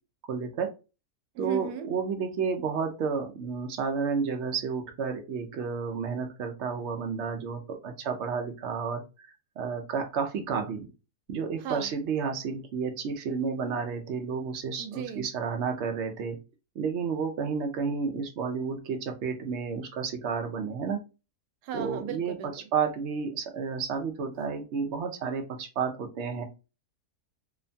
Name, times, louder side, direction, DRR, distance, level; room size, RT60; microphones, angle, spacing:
voice 1, 0.3-0.7 1.4-9.0 9.6-10.9 11.3-16.4 16.8-21.0 21.7-26.4, right 5 dB, 65° right, 0.7 m, -31 dB
voice 2, 1.3-1.9 11.6-11.9 14.8-15.3 21.6-22.5, right 8 dB, 90° right, 1.2 m, -36 dB
2.9 x 2.2 x 2.6 m
omnidirectional pair, 1.7 m